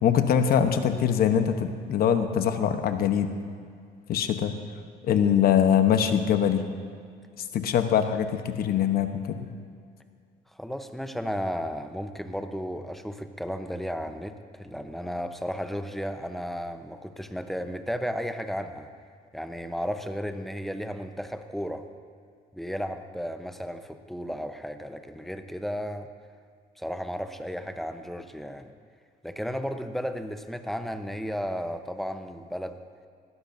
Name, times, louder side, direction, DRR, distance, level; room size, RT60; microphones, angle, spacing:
voice 1, 0.0-3.4 4.1-4.5 5.0-6.7 7.4-9.5, left 8 dB, 65° left, 8 dB, 1.0 m, -23 dB
voice 2, 10.5-18.9 19.3-21.9 22.5-26.1 26.8-28.7 29.2-32.8, equal, ahead, 7 dB, 0.8 m, -34 dB
20.5 x 15.5 x 2.7 m, 2.2 s
cardioid pair, 110°, 17 cm